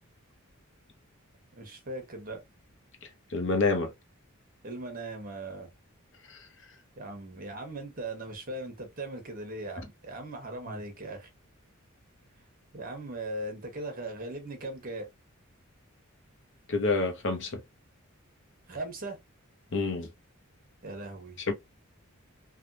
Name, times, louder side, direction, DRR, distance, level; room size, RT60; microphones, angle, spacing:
voice 1, 1.6-2.4 4.6-5.7 7.0-11.3 12.7-15.1 18.7-19.2 20.8-21.4, right 2 dB, 40° right, 1.0 m, -39 dB
voice 2, 3.3-3.9 6.3-6.4 16.7-17.6 19.7-20.1 21.5-21.6, left 3 dB, 55° left, 0.8 m, -27 dB
3.4 x 2.3 x 2.6 m
head